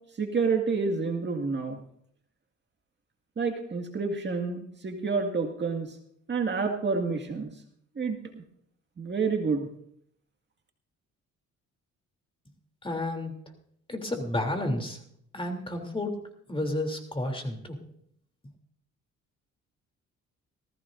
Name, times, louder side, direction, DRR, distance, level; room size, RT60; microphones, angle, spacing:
voice 1, 0.2-1.8 3.4-5.9 6.3-7.5 8.0-8.4 9.0-9.7, right 4 dB, 35° right, 3 dB, 2.0 m, -29 dB
voice 2, 12.8-13.3 13.9-15.0 15.3-16.1 16.5-17.8, left 1 dB, 15° left, 3 dB, 3.1 m, -31 dB
19.0 x 15.5 x 2.6 m, 0.67 s
cardioid pair, 90°, 30 cm